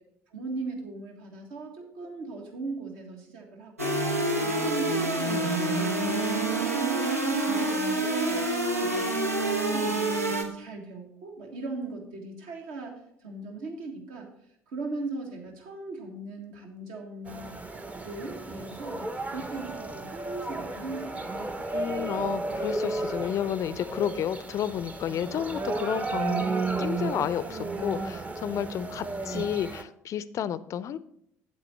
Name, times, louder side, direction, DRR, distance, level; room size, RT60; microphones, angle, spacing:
voice 1, 0.3-3.9 4.4-8.5 8.8-9.4 9.7-14.3 14.7-17.6 18.0-21.3, right 3 dB, 60° right, 2 dB, 1.6 m, -39 dB
sound 1, 3.8-10.4, right 2 dB, 85° right, 0.9 m, -27 dB
sound 2, 17.3-29.8, right 3 dB, 15° right, 0.7 m, -33 dB
voice 2, 21.7-26.4 26.8-31.0, left 9 dB, 40° left, 17 dB, 0.5 m, -31 dB
8.5 x 7.9 x 4.2 m, 0.71 s
figure-of-eight pair, 55°, 8 cm